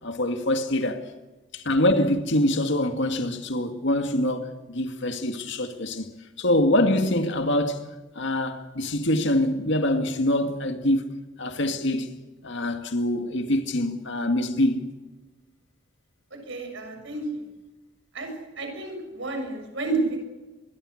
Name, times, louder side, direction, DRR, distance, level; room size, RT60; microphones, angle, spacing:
voice 1, 0.0-1.1 1.5-6.1 6.4-7.8 8.1-11.1 11.4-12.1 12.4-14.8, left 1 dB, 60° left, 2.2 m, -24 dB
voice 2, 16.4-17.4 18.1-18.3 18.6-20.3, right 3 dB, 60° right, 6.6 m, -30 dB
25.0 x 22.5 x 6.6 m
head